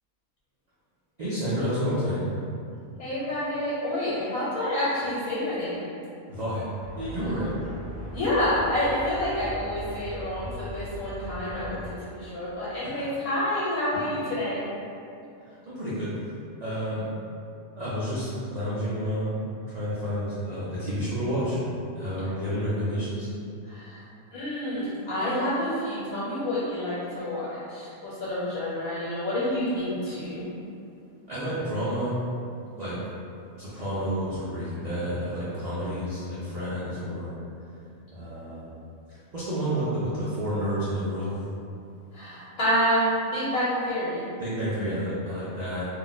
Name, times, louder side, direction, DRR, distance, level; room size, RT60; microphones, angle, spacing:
voice 1, 1.2-2.2 6.3-6.7 7.0-7.5 12.8-13.0 13.9-14.1 15.4-16.1 16.6-17.1 17.8-21.6 21.9-23.3 31.3-32.1 32.8-33.0 33.6-37.3 38.1-38.7 39.3-41.3 44.4-45.9, equal, 65° right, -10 dB, 0.4 m, -30 dB
voice 2, 3.0-5.9 8.1-14.6 23.7-24.0 24.3-30.5 42.1-44.3, left 1 dB, 90° left, -9 dB, 1.2 m, -28 dB
sound 1, 6.8-11.9, equal, 15° left, 0.7 m, -39 dB
2.5 x 2.1 x 3.9 m, 2.6 s
omnidirectional pair, 1.5 m